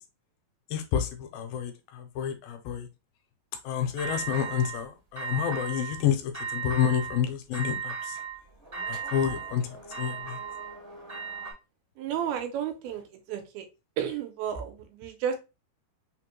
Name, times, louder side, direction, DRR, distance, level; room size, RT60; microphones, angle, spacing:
voice 1, 0.7-2.9 3.7-8.1 8.9-9.6 10.0-10.4, left 9 dB, 80° left, 2.4 m, -29 dB
sound 1, 4.0-4.8 5.2-6.0 6.3-7.2 7.5-11.5, right 6 dB, 55° right, 0.7 m, -36 dB
voice 2, 12.0-13.7 14.0-15.4, right 9 dB, 85° right, 2.7 m, -32 dB
5.8 x 2.2 x 3.0 m
omnidirectional pair, 4.2 m